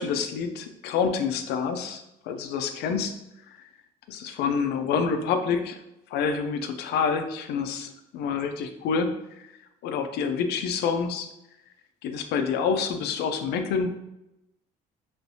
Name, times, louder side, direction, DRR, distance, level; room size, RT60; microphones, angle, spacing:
voice 1, 0.0-3.1 4.1-5.8 6.1-9.5 9.8-11.3 12.0-13.9, left 6 dB, 75° left, 7 dB, 0.4 m, -27 dB
3.2 x 3.0 x 2.7 m, 0.88 s
cardioid pair, 110°, 17 cm